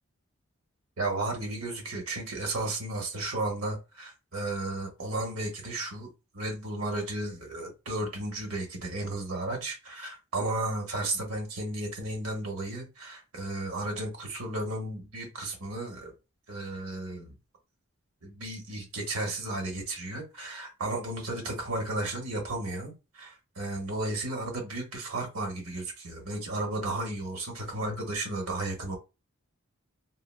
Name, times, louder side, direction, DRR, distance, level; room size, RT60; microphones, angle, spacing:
voice 1, 1.0-6.1 6.3-16.1 16.5-17.3 18.2-29.0, right 2 dB, 80° right, 1.1 m, -34 dB
3.8 x 2.1 x 2.2 m
head